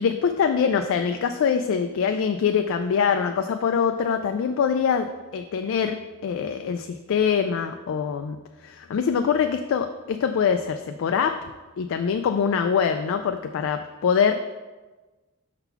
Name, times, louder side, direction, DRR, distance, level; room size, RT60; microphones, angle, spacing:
voice 1, 0.0-8.4 8.6-11.4 11.8-14.3, left 6 dB, 60° left, 7 dB, 0.3 m, -24 dB
5.6 x 3.9 x 5.7 m, 1.2 s
head